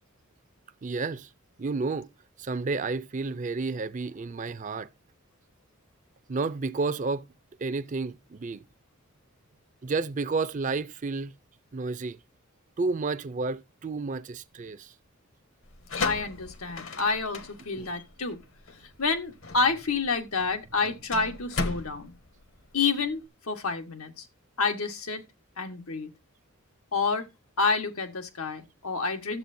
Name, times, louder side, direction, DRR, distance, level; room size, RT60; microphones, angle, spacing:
voice 1, 0.8-1.3 1.6-2.1 2.4-4.9 6.3-7.2 7.6-8.6 9.8-11.3 11.7-12.2 12.8-14.9 17.7-17.9, right 4 dB, 35° right, 0.4 m, -31 dB
sound 1, 15.6-23.2, left 3 dB, 65° left, 1.1 m, -36 dB
voice 2, 16.0-18.4 19.0-22.1 22.7-24.3 24.6-25.2 25.6-26.1 26.9-27.3 27.6-29.4, left 4 dB, 90° left, 1.4 m, -29 dB
12.0 x 7.6 x 2.6 m
head